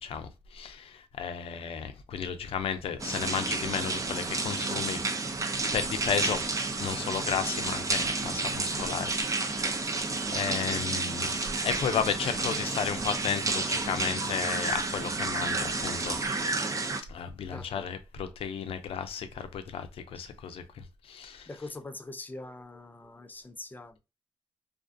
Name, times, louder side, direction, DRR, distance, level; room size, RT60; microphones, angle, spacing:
voice 1, 0.0-5.0 5.7-6.5 6.8-10.1 10.3-11.4 11.6-16.2 17.1-21.5, left 7 dB, 85° left, 0.4 m, -33 dB
sound 1, 3.0-17.0, right 3 dB, 35° right, 0.4 m, -31 dB
voice 2, 17.5-17.8 21.5-24.0, left 2 dB, 20° left, 0.4 m, -43 dB
2.4 x 2.3 x 2.5 m
cardioid pair, 70°, 9 cm